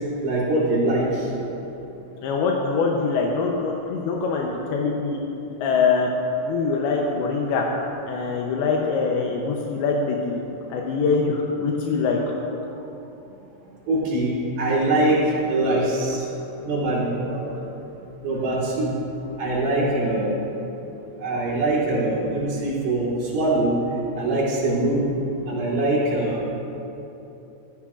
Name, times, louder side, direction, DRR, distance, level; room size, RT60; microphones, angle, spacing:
voice 1, 0.2-1.3 13.9-14.3 14.6-16.2 16.6-17.6 18.2-18.9 19.4-20.4 21.2-23.8 24.2-25.1 25.5-26.5, right 2 dB, 55° right, -9 dB, 4.1 m, -23 dB
voice 2, 2.2-5.2 5.6-6.1 6.4-7.7 8.1-10.4 10.7-12.2, left 4 dB, 85° left, 0 dB, 2.7 m, -23 dB
14.5 x 14.0 x 2.4 m, 3.0 s
omnidirectional pair, 4.4 m